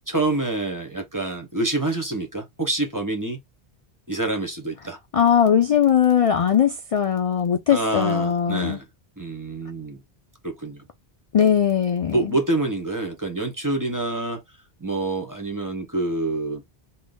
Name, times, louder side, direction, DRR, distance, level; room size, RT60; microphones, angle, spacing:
voice 1, 0.1-3.4 4.1-5.0 7.7-8.8 9.2-10.0 10.4-10.8 12.1-14.4 14.8-16.6, right 2 dB, 20° right, 0.6 m, -26 dB
voice 2, 5.1-8.8 11.3-12.4, left 8 dB, 60° left, 0.3 m, -20 dB
3.8 x 2.0 x 3.5 m
omnidirectional pair, 1.1 m